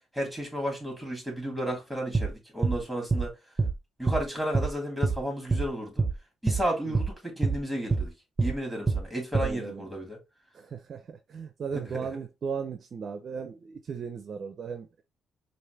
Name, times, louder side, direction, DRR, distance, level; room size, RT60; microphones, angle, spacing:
voice 1, 0.1-3.3 4.0-6.0 6.4-8.1 8.4-10.2 11.7-12.1, equal, ahead, 2.9 m, -33 dB
sound 1, 2.1-2.3 2.6-2.8 3.1-3.3 3.6-3.7 4.1-4.2 4.5-4.7 5.0-5.2 5.5-5.7 6.0-6.1 6.5-6.6 6.9-7.1 7.4-7.6 7.9-8.1 8.4-8.5 8.9-9.0 9.3-9.5, right 4 dB, 25° right, 0.8 m, -25 dB
voice 2, 9.4-9.9 10.5-15.0, right 6 dB, 50° right, 0.6 m, -37 dB
4.8 x 2.5 x 3.3 m
cardioid pair, 90°, 0 cm